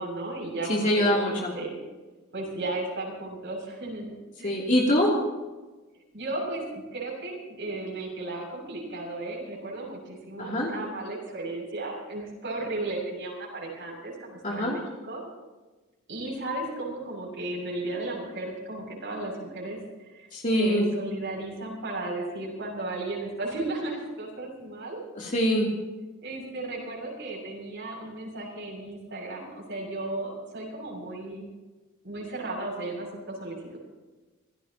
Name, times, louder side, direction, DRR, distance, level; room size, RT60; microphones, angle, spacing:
voice 1, 0.0-1.7 2.3-4.6 6.1-15.2 16.1-25.0 26.2-31.5 32.0-33.8, right 2 dB, 60° right, -2 dB, 6.9 m, -35 dB
voice 2, 0.7-1.5 4.4-5.1 10.4-10.7 14.4-14.8 20.3-20.8 25.2-25.7, equal, 40° left, -3 dB, 3.0 m, -24 dB
26.5 x 16.5 x 3.0 m, 1.2 s
head